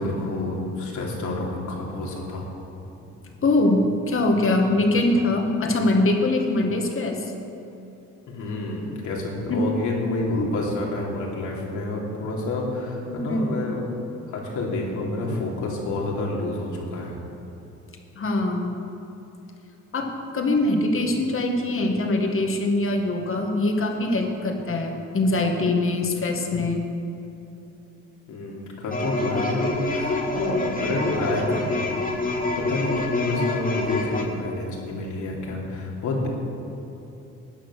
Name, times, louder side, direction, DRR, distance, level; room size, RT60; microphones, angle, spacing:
voice 1, 0.0-2.4 8.3-13.8 14.3-17.2 28.3-32.0 32.6-36.3, left 2 dB, 75° left, -2 dB, 3.0 m, -28 dB
voice 2, 3.4-7.3 9.5-9.7 10.4-10.5 13.1-13.6 18.2-18.8 19.9-26.9, left 2 dB, 45° left, 3 dB, 1.9 m, -23 dB
sound 1, 28.9-34.2, left 2 dB, 30° left, 2.1 m, -27 dB
13.5 x 9.2 x 6.4 m, 3.0 s
cardioid pair, 90°, 30 cm